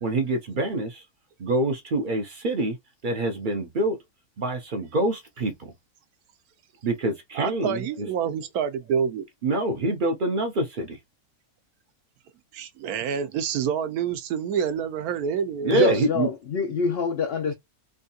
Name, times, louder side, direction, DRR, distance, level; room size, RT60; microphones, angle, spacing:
voice 1, 0.0-1.0 1.4-2.8 3.0-4.0 4.4-5.7 6.8-7.8 9.4-11.0 15.6-16.3, right 2 dB, 55° right, 0.5 m, -26 dB
voice 2, 7.3-9.3 12.5-16.0, right 7 dB, 80° right, 1.1 m, -27 dB
voice 3, 15.7-17.5, left 5 dB, 75° left, 0.5 m, -25 dB
3.5 x 2.3 x 2.6 m
omnidirectional pair, 1.6 m